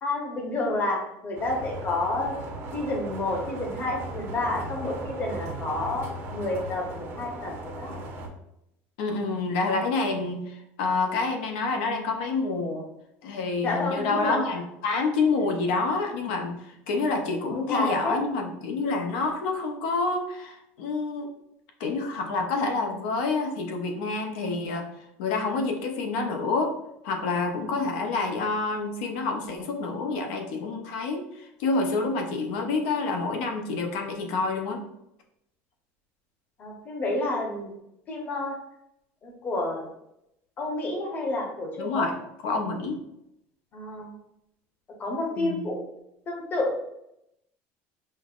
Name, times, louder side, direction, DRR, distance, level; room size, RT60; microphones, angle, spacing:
voice 1, 0.0-2.4 2.7-6.1 6.3-8.0 13.6-14.6 17.5-18.2 36.6-37.7 38.1-38.5 39.2-39.9 40.6-42.0 43.7-44.1 45.0-45.8 46.3-46.7, left 2 dB, 30° left, 0 dB, 0.8 m, -29 dB
sound 1, 1.4-8.3, right 2 dB, 40° right, 0.6 m, -37 dB
voice 2, 9.0-12.9 13.2-21.3 21.8-24.9 25.2-26.7 27.0-34.8 41.8-42.1 42.4-43.0 45.4-45.6, left 3 dB, 85° left, 3 dB, 0.6 m, -28 dB
5.3 x 2.0 x 2.4 m, 0.82 s
cardioid pair, 155°, 6 cm